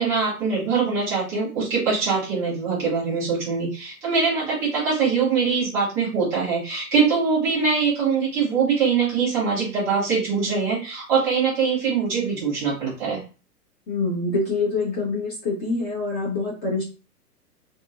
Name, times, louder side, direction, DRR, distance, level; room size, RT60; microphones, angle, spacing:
voice 1, 0.0-13.2, right 5 dB, 5° right, -9 dB, 0.4 m, -23 dB
voice 2, 13.9-16.8, left 3 dB, 20° left, -5 dB, 0.8 m, -25 dB
2.6 x 2.1 x 2.3 m, 0.34 s
figure-of-eight pair, 110°, 47 cm